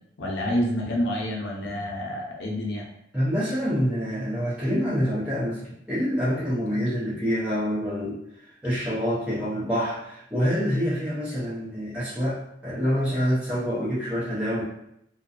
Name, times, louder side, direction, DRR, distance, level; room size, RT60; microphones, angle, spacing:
voice 1, 0.2-2.9, equal, 85° left, -2 dB, 0.6 m, -28 dB
voice 2, 3.1-14.6, equal, 5° right, -11 dB, 0.7 m, -26 dB
2.7 x 2.2 x 2.4 m, 0.76 s
head